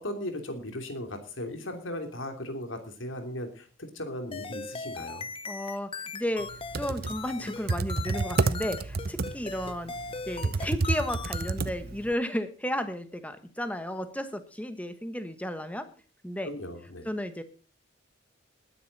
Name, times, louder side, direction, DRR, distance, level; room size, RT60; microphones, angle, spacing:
voice 1, 0.0-5.3 16.4-17.1, left 1 dB, 70° left, 6 dB, 3.0 m, -37 dB
sound 1, 4.3-11.6, left 4 dB, 25° left, 0.8 m, -39 dB
voice 2, 5.5-6.5 6.8-9.9 10.2-15.9 16.2-16.5 17.0-17.4, equal, 5° left, 10 dB, 1.2 m, -33 dB
Computer keyboard, 6.5-12.1, right 3 dB, 50° right, 0.7 m, -30 dB
19.5 x 10.0 x 4.1 m, 0.37 s
head